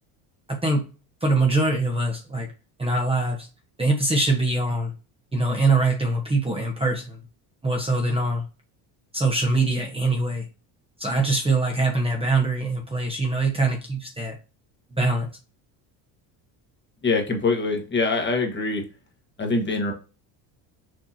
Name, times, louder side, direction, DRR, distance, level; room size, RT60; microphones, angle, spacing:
voice 1, 0.5-0.9 1.2-2.5 2.8-3.5 3.8-4.9 5.3-7.2 7.6-8.4 9.1-10.5 11.0-14.4 14.9-15.3, right 2 dB, 15° right, 1 dB, 0.9 m, -23 dB
voice 2, 17.0-18.8 19.4-19.9, left 3 dB, 25° left, 3 dB, 1.2 m, -24 dB
6.2 x 2.8 x 2.7 m, 0.32 s
cardioid pair, 115°, 44 cm